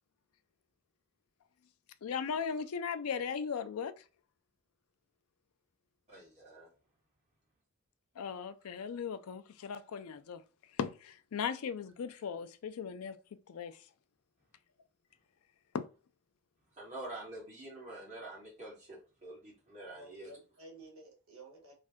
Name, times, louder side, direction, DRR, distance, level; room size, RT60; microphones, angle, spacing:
voice 1, 2.0-3.9 8.2-10.4 10.8-13.2 13.5-13.8 15.7-15.8, left 6 dB, 80° left, 0.4 m, -37 dB
voice 2, 6.1-6.7 16.8-20.3, right 2 dB, 35° right, 1.9 m, -47 dB
voice 3, 19.9-21.7, right 2 dB, 70° right, 1.4 m, -53 dB
3.2 x 2.5 x 3.6 m
head